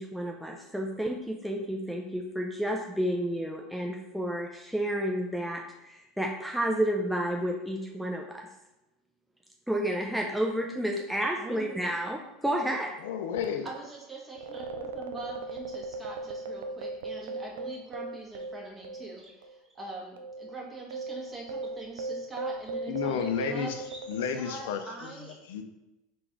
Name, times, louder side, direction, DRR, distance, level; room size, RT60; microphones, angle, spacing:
voice 1, 0.0-8.5 9.7-12.9, equal, ahead, -1 dB, 0.5 m, -31 dB
voice 2, 11.2-11.8 12.6-12.8 13.6-25.4, right 3 dB, 20° right, -3 dB, 1.4 m, -43 dB
voice 3, 13.0-13.7 22.9-23.8 24.1-24.8 25.5-25.6, left 7 dB, 70° left, 6 dB, 0.5 m, -31 dB
sound 1, 14.3-19.2 19.4-19.5 20.2-24.9, right 2 dB, 75° right, 0.4 m, -38 dB
3.8 x 2.5 x 4.5 m, 0.95 s
hypercardioid pair, 80°, 0 cm